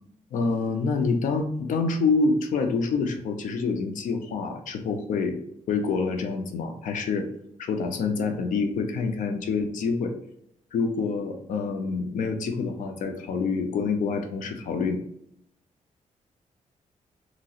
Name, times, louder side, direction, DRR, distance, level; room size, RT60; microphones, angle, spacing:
voice 1, 0.3-5.4 5.7-7.3 7.6-10.1 10.7-15.0, left 4 dB, 80° left, 6 dB, 0.5 m, -27 dB
2.9 x 2.4 x 2.7 m, 0.72 s
wide cardioid pair, 140°, 13 cm